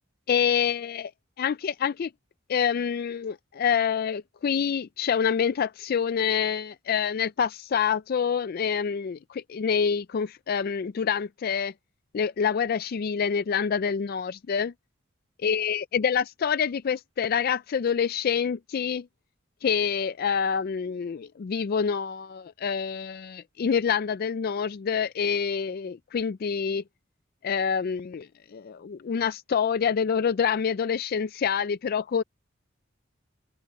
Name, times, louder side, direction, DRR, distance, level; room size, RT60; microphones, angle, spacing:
voice 1, 0.3-1.1 1.4-2.1 2.5-11.7 12.1-14.7 15.4-19.1 19.6-26.8 27.4-32.2, left 7 dB, 50° left, 0.4 m, -27 dB
open air
head